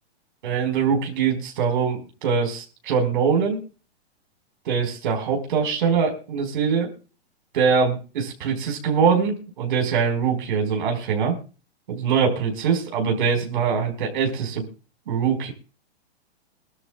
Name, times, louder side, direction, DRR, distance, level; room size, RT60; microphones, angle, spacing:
voice 1, 0.4-3.6 4.6-6.9 7.5-11.4 11.9-14.6 15.1-15.5, right 6 dB, 50° right, 2 dB, 4.8 m, -23 dB
23.5 x 12.5 x 2.3 m, 0.35 s
hypercardioid pair, 175°, 33 cm